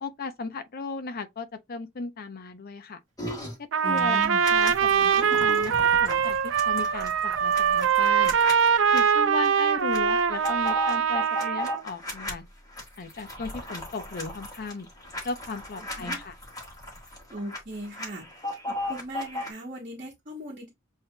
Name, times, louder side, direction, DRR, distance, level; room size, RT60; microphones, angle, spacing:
voice 1, 0.0-3.0 3.6-4.2 4.5-5.1 5.4-8.3 8.9-12.5 13.0-14.9 15.2-16.3, left 3 dB, 50° left, 0.6 m, -36 dB
sound 1, 3.2-3.5 4.0-9.0 9.4-9.5 9.8-12.3 12.7-17.6 17.8-19.5, left 1 dB, 20° left, 1.5 m, -36 dB
Trumpet, 3.7-11.8, right 7 dB, 75° right, 0.4 m, -23 dB
voice 2, 3.8-4.4 16.0-16.2 17.3-18.2 18.7-20.7, right 1 dB, 45° right, 1.1 m, -37 dB
7.5 x 2.7 x 2.2 m
head